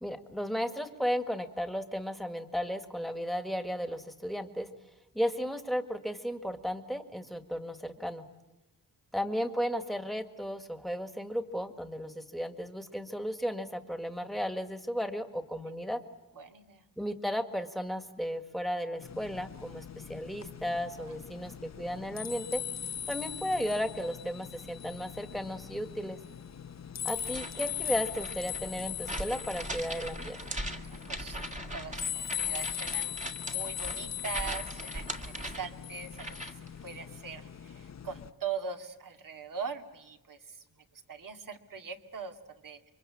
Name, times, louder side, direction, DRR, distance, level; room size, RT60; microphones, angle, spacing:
voice 1, 0.0-4.7 5.1-8.3 9.1-16.0 17.0-22.6 23.1-26.2 27.0-30.4, equal, ahead, 9 dB, 1.8 m, -34 dB
voice 2, 16.3-16.8 21.1-21.2 27.2-27.4 30.9-31.4 31.7-36.5 36.8-40.6 40.9-42.9, right 6 dB, 60° right, 6 dB, 2.3 m, -41 dB
sound 1, 19.0-38.3, left 9 dB, 45° left, 0.9 m, -40 dB
sound 2, 27.2-36.7, right 1 dB, 20° right, 1.9 m, -40 dB
28.0 x 24.0 x 8.7 m, 1.0 s
wide cardioid pair, 140°, 36 cm